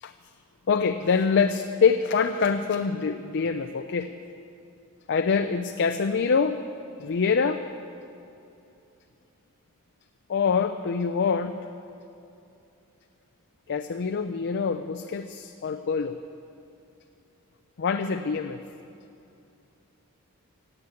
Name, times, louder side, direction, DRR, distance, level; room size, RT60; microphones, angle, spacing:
voice 1, 0.7-4.1 5.1-6.6 7.0-7.6 10.3-11.6 13.7-16.2 17.8-18.6, left 5 dB, 55° left, 7 dB, 0.5 m, -25 dB
16.5 x 8.0 x 8.4 m, 2.7 s
head